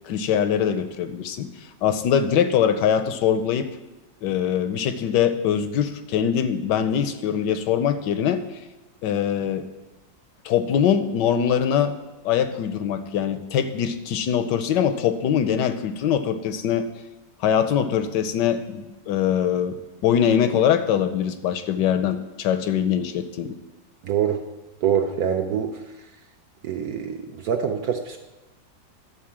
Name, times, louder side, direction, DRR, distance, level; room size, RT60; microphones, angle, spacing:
voice 1, 0.0-1.5 1.8-3.7 4.2-8.4 9.0-9.7 10.4-12.0 12.2-16.9 17.4-23.6, left 8 dB, 75° left, 10 dB, 1.1 m, -23 dB
voice 2, 24.0-24.4 24.8-26.1 26.6-28.2, right 8 dB, 70° right, 5 dB, 0.9 m, -25 dB
11.5 x 4.0 x 7.2 m, 1.1 s
omnidirectional pair, 2.1 m